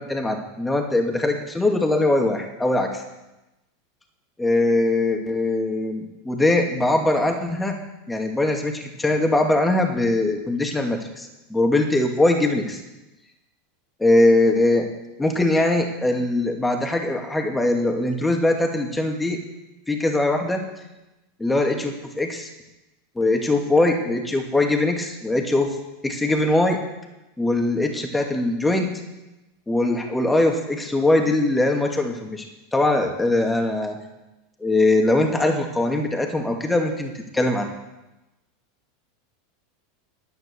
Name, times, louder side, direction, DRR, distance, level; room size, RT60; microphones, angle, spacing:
voice 1, 0.0-3.0 4.4-7.8 8.1-12.8 14.0-14.9 15.2-19.4 19.9-20.6 21.4-22.5 23.2-25.7 26.0-26.8 27.4-28.9 29.7-32.4 32.7-34.0 34.6-37.7, left 2 dB, 10° left, 3 dB, 2.4 m, -21 dB
11.0 x 8.8 x 7.1 m, 1.0 s
hypercardioid pair, 85°, 0 cm